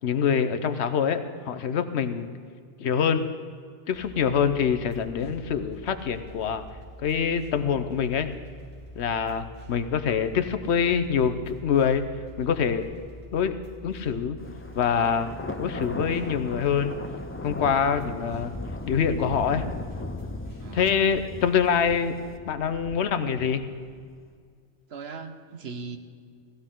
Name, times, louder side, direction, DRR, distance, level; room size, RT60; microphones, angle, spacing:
voice 1, 0.0-2.3 2.8-3.3 3.9-6.6 7.0-8.3 9.0-12.0 12.4-12.9 13.3-13.5 13.8-14.4 14.7-15.3 15.6-17.0 17.4-18.5 18.9-19.7 20.7-22.2 22.4-23.6, left 7 dB, 70° left, 9 dB, 1.1 m, -25 dB
sound 1, 3.9-20.8, equal, 45° right, 4.7 m, -45 dB
Thunder, 14.4-24.2, left 2 dB, 15° left, 0.4 m, -37 dB
voice 2, 20.6-20.9 24.9-26.0, right 5 dB, 65° right, 6 dB, 1.2 m, -39 dB
18.5 x 14.5 x 3.7 m, 2.1 s
omnidirectional pair, 1.2 m